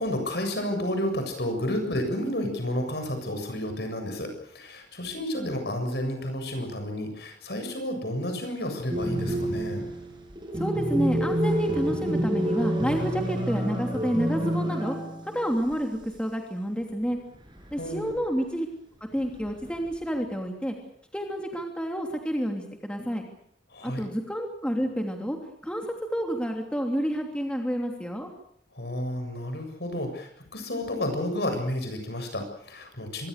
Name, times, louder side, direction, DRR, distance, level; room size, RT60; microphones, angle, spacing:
voice 1, 0.0-9.9 17.8-18.1 23.7-24.0 28.7-33.3, left 1 dB, 60° left, 6 dB, 7.4 m, -31 dB
sound 1, 8.9-15.4 15.7-15.8 17.5-18.2 19.2-19.9, right 1 dB, 25° right, 7.2 m, -28 dB
voice 2, 10.6-15.0 15.3-17.2 17.7-18.7 19.1-20.8 21.1-23.2 23.8-25.4 25.6-28.3, equal, 5° left, 2 dB, 3.0 m, -29 dB
25.5 x 24.5 x 6.7 m, 0.68 s
head